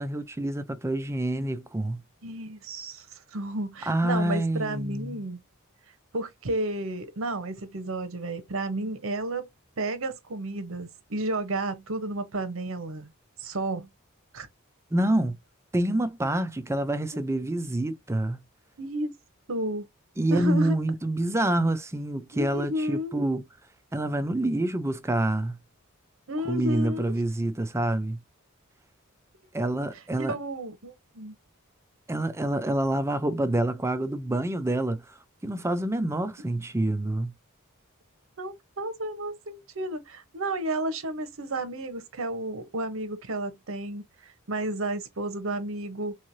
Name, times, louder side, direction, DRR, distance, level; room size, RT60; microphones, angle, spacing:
voice 1, 0.0-2.0 3.9-5.2 14.9-15.3 15.7-18.4 20.2-23.4 23.9-25.6 26.4-28.2 29.5-30.3 32.1-35.0 35.4-37.3, right 1 dB, 15° right, 0.4 m, -27 dB
voice 2, 2.2-5.4 6.1-9.5 9.8-13.1 13.4-13.9 14.3-14.5 17.1-17.5 18.8-19.1 19.5-19.9 20.3-20.8 22.3-23.2 26.3-27.1 30.2-31.3 38.4-46.2, right 1 dB, 65° right, 0.8 m, -32 dB
3.6 x 3.1 x 2.6 m
head